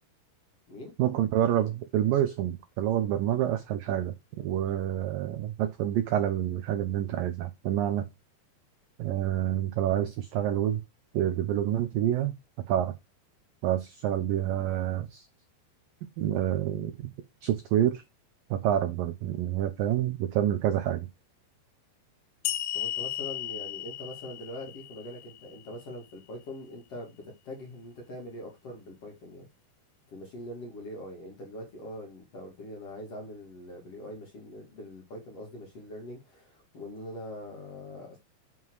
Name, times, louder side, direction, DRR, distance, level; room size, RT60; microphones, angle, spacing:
voice 1, 1.0-8.1 9.0-10.8 11.1-12.3 12.7-12.9 13.6-15.3 16.2-17.1 17.4-18.0 18.5-21.1, right 11 dB, 80° right, 2.0 m, -28 dB
sound 1, 22.5-25.8, left 13 dB, 85° left, 3.0 m, -35 dB
voice 2, 22.7-29.5 30.1-38.2, left 1 dB, 40° left, 2.7 m, -42 dB
7.6 x 5.7 x 4.7 m
omnidirectional pair, 5.1 m